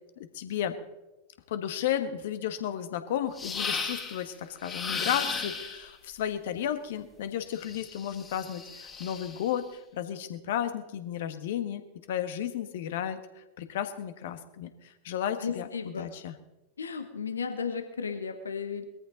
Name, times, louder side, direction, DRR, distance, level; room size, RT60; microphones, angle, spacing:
voice 1, 0.2-0.7 1.5-9.7 9.9-16.3, left 10 dB, 55° left, 10 dB, 1.4 m, -33 dB
sound 1, 3.4-4.2 4.6-5.9 7.6-9.5, left 5 dB, 20° left, 2.7 m, -35 dB
voice 2, 15.4-16.1 16.8-18.8, left 6 dB, 70° left, 9 dB, 1.4 m, -34 dB
21.0 x 14.0 x 4.0 m, 1.0 s
figure-of-eight pair, 90°, 0 cm